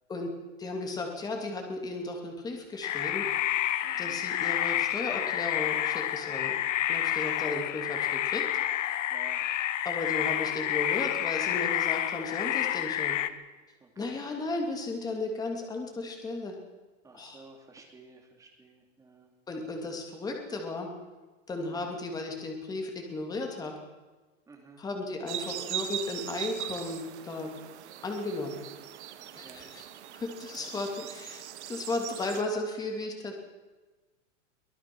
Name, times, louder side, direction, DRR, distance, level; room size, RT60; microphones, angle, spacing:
voice 1, 0.6-3.3 4.0-6.6 6.9-8.5 9.8-13.2 14.0-16.6 17.1-17.4 19.5-20.9 21.5-23.7 24.8-27.5 28.0-28.6 29.3-29.8 30.1-33.4, left 2 dB, 10° left, 2 dB, 2.7 m, -35 dB
sound 1, 2.8-13.3, left 12 dB, 75° left, 1.3 m, -29 dB
voice 2, 3.8-4.2 9.1-9.4 13.8-14.3 17.0-19.3 21.6-21.9 24.5-24.8 29.2-29.7 30.6-31.1, right 3 dB, 10° right, 2 dB, 2.7 m, -53 dB
sound 2, 25.3-32.4, right 10 dB, 65° right, 1.8 m, -40 dB
24.0 x 18.0 x 6.2 m, 1.2 s
supercardioid pair, 170°, 37 cm